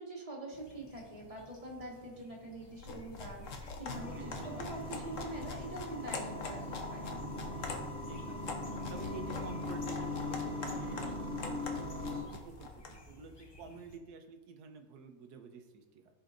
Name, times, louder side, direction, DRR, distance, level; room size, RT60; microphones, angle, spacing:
voice 1, 0.0-6.6 6.9-7.2, right 2 dB, 25° right, -3 dB, 1.6 m, -44 dB
sound 1, 0.5-14.0, left 2 dB, 30° left, 0.4 m, -58 dB
sound 2, 2.7-13.0, left 4 dB, 60° left, 1.2 m, -44 dB
Default Project, 3.9-12.2, left 2 dB, 45° right, 1.4 m, -40 dB
voice 2, 4.1-4.5 8.1-8.6 8.9-11.8 12.0-16.1, right 6 dB, 85° right, 5 dB, 1.3 m, -50 dB
14.0 x 5.4 x 2.5 m, 1.3 s
omnidirectional pair, 1.6 m